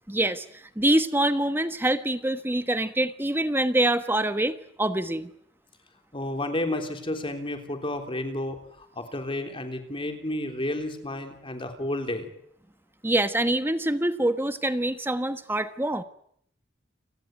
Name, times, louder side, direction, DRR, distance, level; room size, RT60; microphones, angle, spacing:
voice 1, 0.1-0.4 0.8-5.3 13.0-16.0, right 1 dB, 10° right, 11 dB, 1.2 m, -25 dB
voice 2, 6.1-12.3, left 1 dB, 30° left, 6 dB, 3.6 m, -31 dB
29.5 x 18.5 x 9.4 m, 0.70 s
head